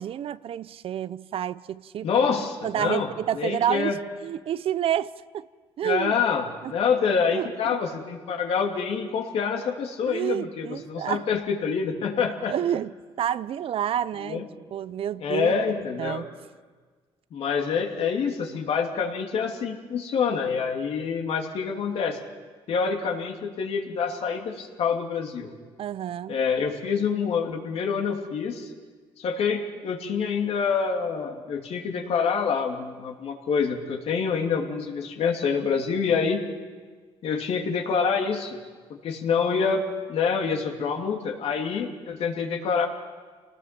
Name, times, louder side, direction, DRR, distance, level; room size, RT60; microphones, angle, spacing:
voice 1, 0.0-2.1 2.6-4.0 4.2-5.4 5.8-6.1 6.6-6.8 7.3-7.5 10.1-11.3 12.5-12.9 13.2-14.4 14.7-15.6 16.0-16.3 25.8-26.4, right 10 dB, 60° right, 0.6 m, -29 dB
voice 2, 2.0-3.1 3.3-4.0 5.8-12.5 14.2-14.4 15.2-16.2 17.3-22.2 22.7-25.5 26.3-28.7 29.2-36.4 37.2-38.6 39.0-42.9, left 6 dB, 70° left, 2.8 m, -26 dB
27.0 x 19.5 x 5.9 m
cardioid pair, 90°, 11 cm